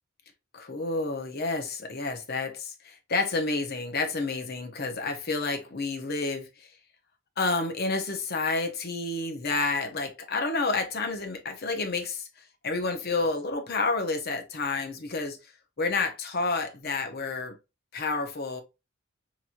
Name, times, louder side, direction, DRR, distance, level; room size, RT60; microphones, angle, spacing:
voice 1, 0.5-6.7 7.4-12.3 12.6-15.5 15.8-17.6 17.9-18.6, left 3 dB, 50° left, 0.8 m, -30 dB
4.2 x 3.0 x 2.5 m
head